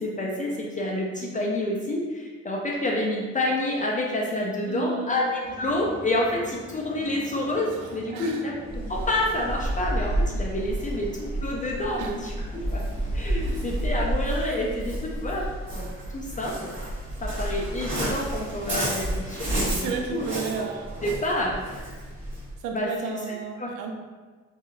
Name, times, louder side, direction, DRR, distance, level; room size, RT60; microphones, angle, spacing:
voice 1, 0.0-0.5 0.8-2.0 2.5-8.5 8.9-11.1 11.4-12.8 13.2-14.9 15.2-15.4 15.7-15.8 16.1-16.5 17.4-19.2 19.5-20.2 21.0-21.5 22.7-23.2 23.6-23.7, left 1 dB, 25° left, -2 dB, 0.4 m, -28 dB
voice 2, 4.7-5.3 8.1-8.4 12.0-12.2 13.4-13.6 19.5-20.9 22.6-23.9, right 5 dB, 85° right, 3 dB, 0.5 m, -33 dB
sound 1, 5.4-14.0, left 2 dB, 75° left, 0.7 m, -44 dB
Waves surf, 8.7-22.5, right 1 dB, 40° right, 1.1 m, -30 dB
2.9 x 2.3 x 2.3 m, 1.4 s
cardioid pair, 90°, 30 cm